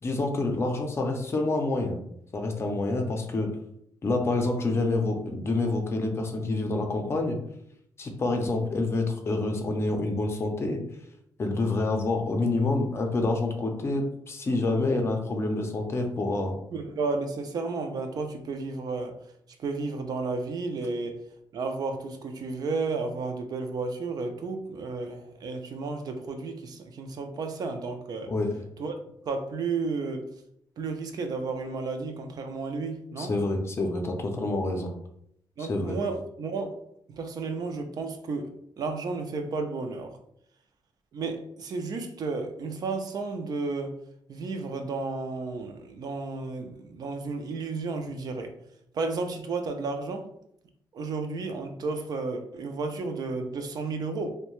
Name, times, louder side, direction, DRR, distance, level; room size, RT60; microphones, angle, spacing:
voice 1, 0.0-2.0 2.3-3.5 4.0-7.4 8.0-10.8 11.4-16.5 28.3-28.5 33.2-34.9 35.6-36.0, left 2 dB, 35° left, 3 dB, 0.5 m, -27 dB
voice 2, 16.7-19.2 19.6-21.2 21.5-28.3 28.8-28.9 29.2-30.3 30.8-33.3 35.6-36.7 37.1-40.2 41.1-44.0 44.3-48.5 48.9-50.3 50.9-54.3, right 3 dB, 55° right, 6 dB, 0.4 m, -32 dB
2.6 x 2.1 x 3.0 m, 0.71 s
cardioid pair, 130°, 8 cm